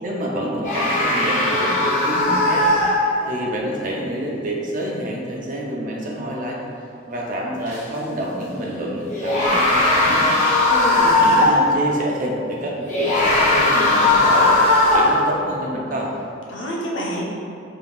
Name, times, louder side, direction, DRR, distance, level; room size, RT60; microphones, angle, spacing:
voice 1, 0.0-2.8 3.2-6.6 7.1-10.3 11.2-16.1, right 1 dB, 45° right, -2 dB, 0.6 m, -27 dB
sound 1, 0.6-3.4 7.7-7.8 9.1-11.7 12.9-15.3, left 2 dB, 40° left, 0.7 m, -18 dB
voice 2, 10.7-11.6 16.5-17.2, equal, 90° left, -4 dB, 0.8 m, -28 dB
5.2 x 2.8 x 2.3 m, 2.6 s
head